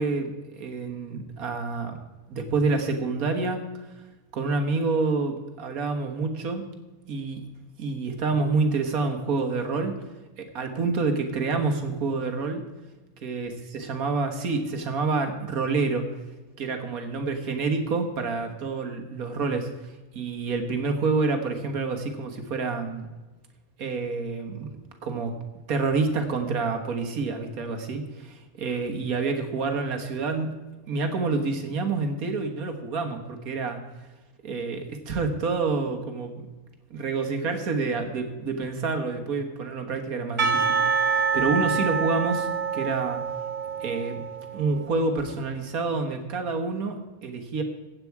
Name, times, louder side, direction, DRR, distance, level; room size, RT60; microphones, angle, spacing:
voice 1, 0.0-2.0 2.3-3.9 4.3-6.7 7.1-7.4 7.8-10.0 10.4-12.6 13.2-16.1 16.6-19.7 20.1-23.1 23.8-24.7 25.0-25.4 25.7-30.6 30.9-33.8 34.4-36.5 36.9-43.2 43.8-44.2 44.5-47.6, right 4 dB, 85° right, 5 dB, 1.8 m, -28 dB
Percussion / Church bell, 40.4-44.8, right 5 dB, 35° right, 1.4 m, -26 dB
15.5 x 8.7 x 4.7 m, 1.2 s
omnidirectional pair, 1.5 m